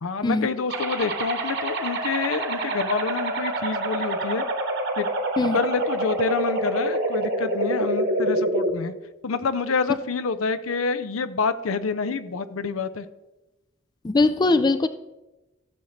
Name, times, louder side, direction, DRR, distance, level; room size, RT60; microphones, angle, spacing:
voice 1, 0.0-4.4 5.0-5.1 5.5-8.9 9.2-13.1, left 4 dB, 85° left, 13 dB, 0.6 m, -27 dB
sound 1, 0.7-8.7, right 1 dB, 55° right, 1.2 m, -26 dB
voice 2, 14.0-14.9, left 3 dB, 20° left, 12 dB, 0.3 m, -21 dB
15.0 x 7.2 x 3.2 m, 1.0 s
head